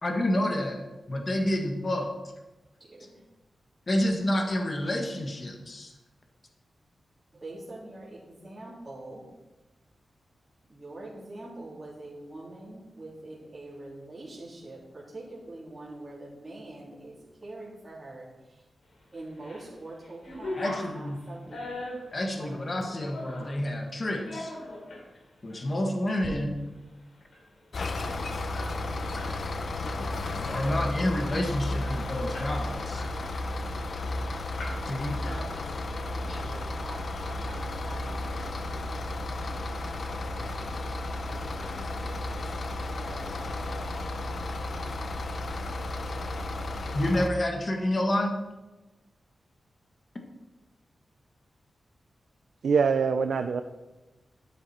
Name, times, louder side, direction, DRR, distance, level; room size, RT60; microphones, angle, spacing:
voice 1, 0.0-0.8 1.1-2.1 3.9-5.9 20.5-21.2 22.1-24.5 25.4-26.6 30.5-33.0 34.9-35.2 36.2-36.4 46.9-48.4, left 1 dB, 35° left, 2 dB, 1.6 m, -29 dB
voice 2, 2.9-3.2 7.3-9.3 10.7-17.1 17.4-18.6 19.1-21.6 22.4-22.8 35.3-35.7 36.0-38.8 39.3-39.6 40.3-43.8, right 2 dB, 20° right, -9 dB, 3.5 m, -45 dB
sound 1, 19.1-19.7 20.0-23.6 24.1-25.0 25.5-25.6 26.0-26.3 26.6-26.7 27.0-29.3 29.7-29.9 30.2-30.7 31.1-31.2 31.5-32.6 32.9-34.1 34.6-35.0 35.2-35.9, left 1 dB, 65° left, 4.4 m, -40 dB
sound 2, 27.7-47.3, left 2 dB, 50° left, 0.7 m, -33 dB
voice 3, 52.6-53.6, right 5 dB, 75° right, 7 dB, 0.5 m, -24 dB
12.5 x 9.1 x 4.4 m, 1.1 s
wide cardioid pair, 145°, 0 cm